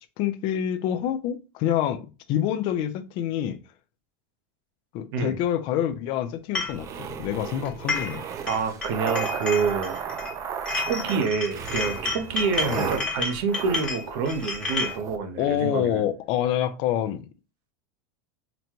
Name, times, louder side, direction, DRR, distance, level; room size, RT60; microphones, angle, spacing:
voice 1, 0.2-3.6 4.9-8.2 12.7-12.9 15.4-17.2, left 10 dB, 45° left, 0.4 m, -27 dB
sound 1, 6.6-6.8 7.7-8.2 8.5-10.3 10.7-15.0, left 3 dB, 10° left, 1.0 m, -31 dB
sound 2, 6.7-15.2, right 7 dB, 25° right, 0.3 m, -34 dB
voice 2, 8.5-10.0 10.7-16.1, right 5 dB, 60° right, 0.8 m, -27 dB
4.0 x 2.2 x 2.8 m
supercardioid pair, 145°, 12 cm